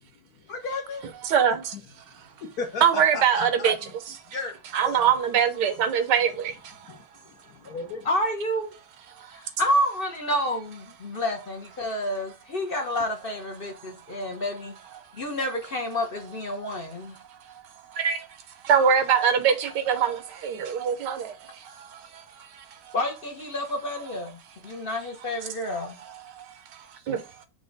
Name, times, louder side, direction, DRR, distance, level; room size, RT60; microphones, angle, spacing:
voice 1, 0.5-1.1 2.6-3.7 4.3-4.6 4.8-5.0 6.9-7.0 7.6-8.1, left 4 dB, 65° left, 1.1 m, -33 dB
voice 2, 1.2-1.7 2.8-3.8 4.7-7.0 9.2-9.4 17.3-17.6 17.9-18.3 18.6-22.9 25.7-25.9 26.3-27.2, right 8 dB, 75° right, 1.3 m, -24 dB
voice 3, 8.0-8.7 9.3-14.7 15.1-17.2 22.9-26.0, equal, 50° left, 0.7 m, -29 dB
6.2 x 2.2 x 3.9 m
omnidirectional pair, 1.9 m